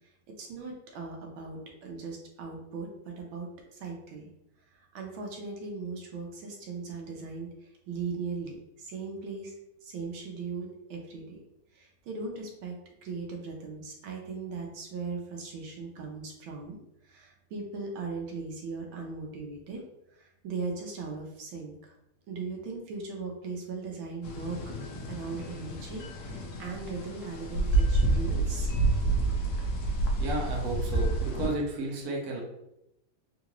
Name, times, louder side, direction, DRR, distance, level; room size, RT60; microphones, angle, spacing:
voice 1, 0.4-4.3 4.7-9.5 9.8-11.4 11.7-12.8 13.0-19.8 20.1-21.9 22.3-24.6 25.1-28.7, right 4 dB, 80° right, 0 dB, 1.5 m, -38 dB
sound 1, 24.2-31.5, right 2 dB, 70° left, 0.9 m, -29 dB
voice 2, 30.1-32.4, right 1 dB, 60° right, -1 dB, 1.1 m, -33 dB
3.8 x 2.5 x 2.9 m, 0.85 s
omnidirectional pair, 2.2 m